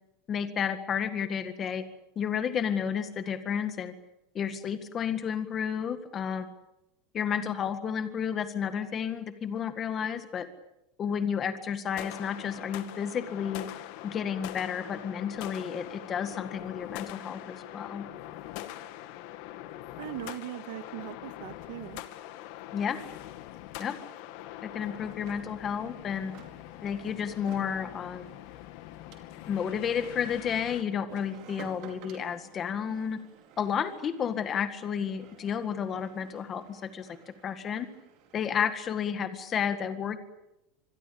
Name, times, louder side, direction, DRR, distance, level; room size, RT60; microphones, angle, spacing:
voice 1, 0.3-1.8 2.2-3.9 4.3-6.5 7.1-10.5 11.0-13.7 14.0-18.1 22.7-23.0 23.8-24.0 24.6-26.3 26.8-28.2 29.5-33.2 33.6-37.1 37.4-37.9 38.3-40.2, left 7 dB, 20° left, 10 dB, 1.8 m, -31 dB
sound 1, 11.9-30.8, left 14 dB, 50° left, 2.0 m, -43 dB
voice 2, 20.0-22.0, right 14 dB, 65° right, 10 dB, 2.3 m, -40 dB
sound 2, 21.6-21.7 21.9-38.5, right 8 dB, 40° right, 4.6 m, -55 dB
26.5 x 22.0 x 8.6 m, 0.90 s
supercardioid pair, 175°, 0 cm